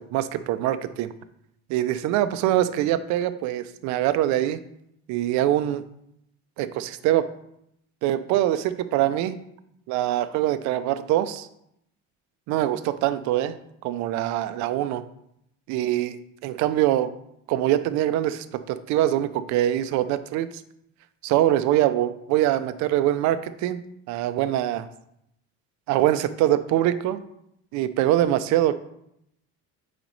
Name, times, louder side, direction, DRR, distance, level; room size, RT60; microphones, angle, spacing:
voice 1, 0.1-1.1 1.7-4.6 5.1-5.8 6.6-7.3 8.0-9.4 9.9-11.5 12.5-13.6 13.8-15.0 15.7-17.1 17.5-20.5 21.2-23.8 24.1-24.9 25.9-27.2 27.7-28.7, right 13 dB, 65° right, 13 dB, 0.5 m, -23 dB
9.0 x 4.0 x 3.2 m, 0.76 s
cardioid pair, 165°, 32 cm